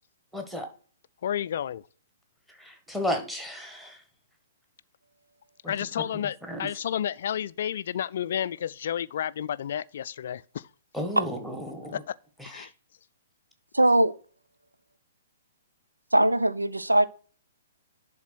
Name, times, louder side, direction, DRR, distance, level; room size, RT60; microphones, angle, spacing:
voice 1, 0.3-0.7 2.6-4.0 5.6-6.7 10.9-12.0 12.4-12.7, left 1 dB, ahead, 1.7 m, -34 dB
voice 2, 1.2-1.8 5.7-10.6 12.1-12.2 12.5-12.7, left 9 dB, 50° left, 0.4 m, -31 dB
voice 3, 13.8-14.1 16.1-17.1, right 1 dB, 80° right, 0.7 m, -21 dB
11.0 x 3.9 x 6.1 m
figure-of-eight pair, 120°, 0 cm